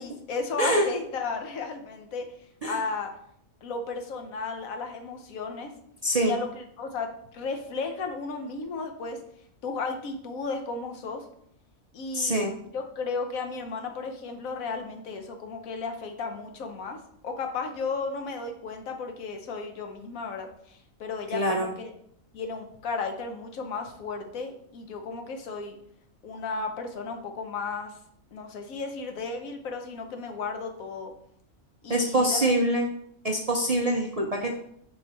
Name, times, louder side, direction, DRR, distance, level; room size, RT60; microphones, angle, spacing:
voice 1, 0.0-2.3 2.6-3.1 3.6-5.7 6.2-9.2 9.6-11.2 11.9-12.4 12.7-17.0 17.2-21.9 22.3-25.8 26.2-27.9 28.3-31.1 31.8-32.5 34.4-34.5, left 4 dB, 80° left, 5 dB, 1.3 m, -34 dB
voice 2, 12.1-12.5 21.3-21.7 31.9-32.9 33.2-34.5, right 1 dB, 60° right, 1 dB, 0.4 m, -24 dB
5.3 x 4.9 x 4.1 m, 0.69 s
omnidirectional pair, 1.4 m